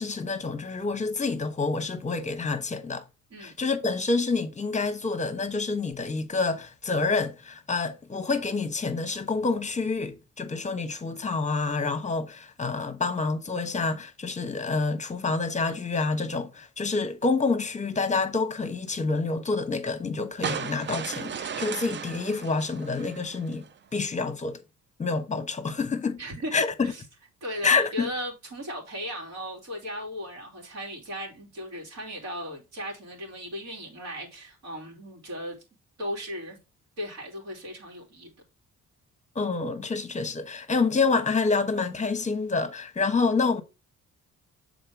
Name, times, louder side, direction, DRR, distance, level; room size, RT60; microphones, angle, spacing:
voice 1, 0.0-3.0 3.4-23.6 23.9-24.6 25.0-26.2 26.5-26.9 27.6-28.1 39.3-43.6, left 4 dB, 25° left, 1.1 m, -27 dB
sound 1, 20.4-23.7, right 7 dB, 40° right, 0.5 m, -35 dB
voice 2, 26.2-27.0 27.4-35.6 36.0-36.6 37.0-38.3, equal, 60° right, 3.2 m, -36 dB
6.6 x 4.2 x 4.6 m
cardioid pair, 90°, 30 cm